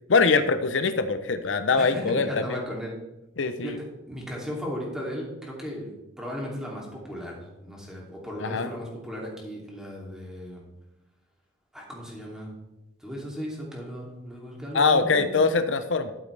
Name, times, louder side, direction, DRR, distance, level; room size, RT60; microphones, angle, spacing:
voice 1, 0.1-2.6 3.4-3.8 8.4-8.7 14.7-16.1, left 4 dB, 85° left, 10 dB, 0.7 m, -23 dB
voice 2, 1.8-2.9 3.6-5.9 6.2-10.6 11.7-12.5 13.0-15.7, equal, 5° right, -3 dB, 2.8 m, -36 dB
12.0 x 8.5 x 3.4 m, 0.95 s
head